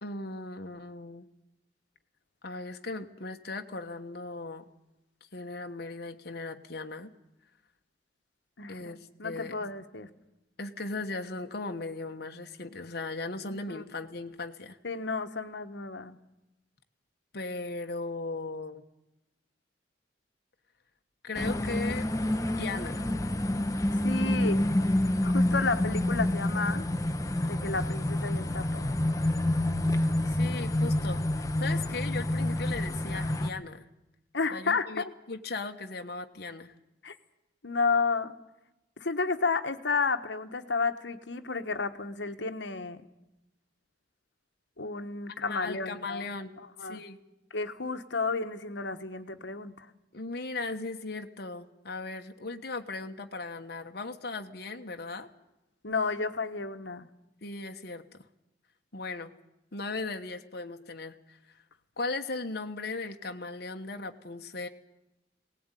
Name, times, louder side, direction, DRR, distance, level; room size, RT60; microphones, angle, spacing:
voice 1, 0.0-1.3 2.4-4.7 5.3-7.1 8.7-9.7 10.6-14.8 17.3-18.8 21.2-22.1 22.6-23.0 30.3-33.9 34.5-36.7 45.5-47.2 50.1-55.3 57.4-58.2 58.9-59.3 59.7-61.4 62.0-64.7, left 3 dB, 60° left, 5 dB, 1.3 m, -37 dB
voice 2, 8.6-10.1 13.4-13.8 14.8-16.2 23.9-24.7 25.2-26.8 27.5-28.9 34.3-35.1 37.0-37.1 37.6-38.4 39.0-43.0 44.8-46.3 46.6-47.0 47.5-49.9 55.8-57.1, left 4 dB, 80° left, 8 dB, 1.4 m, -32 dB
sound 1, 21.3-33.5, left 1 dB, 20° left, 1.0 m, -28 dB
21.0 x 18.5 x 9.2 m, 0.93 s
head